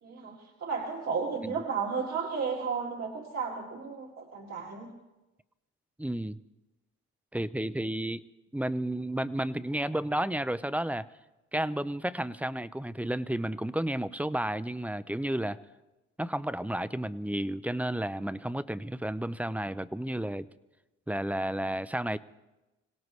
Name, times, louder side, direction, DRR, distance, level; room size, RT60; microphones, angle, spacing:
voice 1, 0.0-0.3 0.6-4.9, right 5 dB, 60° right, -2 dB, 2.4 m, -33 dB
voice 2, 6.0-6.4 7.3-8.2 8.5-11.1 11.5-15.6 16.2-20.5 21.1-22.2, right 1 dB, 5° right, 15 dB, 0.5 m, -32 dB
26.0 x 17.5 x 3.2 m, 1.1 s
cardioid pair, 90°, 30 cm